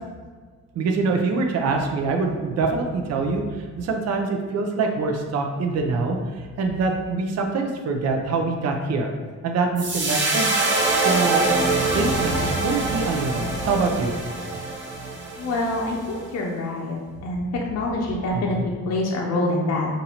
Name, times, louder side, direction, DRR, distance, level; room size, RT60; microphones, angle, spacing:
voice 1, 0.8-9.1 9.4-10.5 11.0-11.4 11.9-14.2 18.3-18.7, right 3 dB, 55° right, 3 dB, 0.6 m, -24 dB
sound 1, 9.8-16.2, right 3 dB, 40° right, 0.9 m, -24 dB
voice 2, 15.4-17.0 17.2-17.4 17.7-19.9, left 2 dB, 60° left, -2 dB, 0.6 m, -25 dB
5.3 x 2.6 x 2.9 m, 1.5 s
cardioid pair, 90°, 30 cm